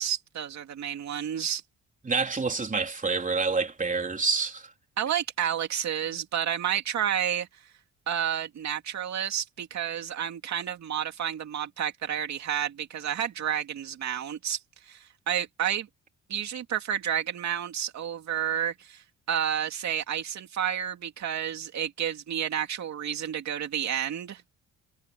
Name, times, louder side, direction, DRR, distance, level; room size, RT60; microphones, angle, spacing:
voice 1, 0.0-1.6 5.0-7.5 8.1-14.6 14.9-15.9 16.3-24.4, right 9 dB, 65° right, 2.5 m, -30 dB
voice 2, 2.0-4.7, right 4 dB, 25° right, 3.9 m, -27 dB
cardioid pair, 90°, 30 cm